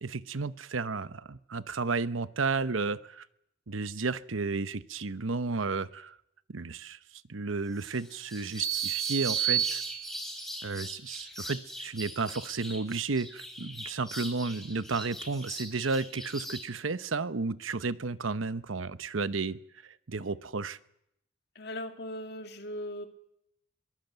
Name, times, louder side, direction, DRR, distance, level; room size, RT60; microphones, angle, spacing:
voice 1, 0.0-3.3 3.7-6.2 6.5-7.0 7.3-9.8 10.6-19.6 19.8-20.8, right 4 dB, 80° right, 14 dB, 0.9 m, -32 dB
sound 1, 7.7-16.7, left 1 dB, ahead, 4.0 m, -42 dB
sound 2, 8.6-10.5, right 11 dB, 15° right, 2.1 m, -30 dB
voice 2, 21.6-23.1, left 1 dB, 55° left, 6 dB, 2.2 m, -38 dB
22.5 x 19.5 x 8.1 m, 0.77 s
head